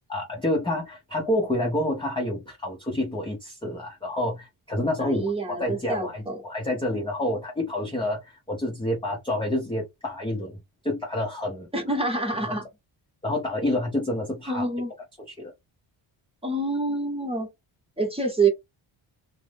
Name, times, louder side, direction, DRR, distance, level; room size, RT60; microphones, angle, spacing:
voice 1, 0.1-5.3 5.6-10.6 10.8-11.7 12.4-12.6 13.2-14.7 15.3-15.5, left 1 dB, 10° left, 0.5 m, -28 dB
voice 2, 5.0-6.4 11.7-12.6 14.5-14.9 16.4-17.5 18.0-18.5, right 3 dB, 10° right, 0.9 m, -26 dB
2.5 x 2.0 x 3.2 m
wide cardioid pair, 135°, 48 cm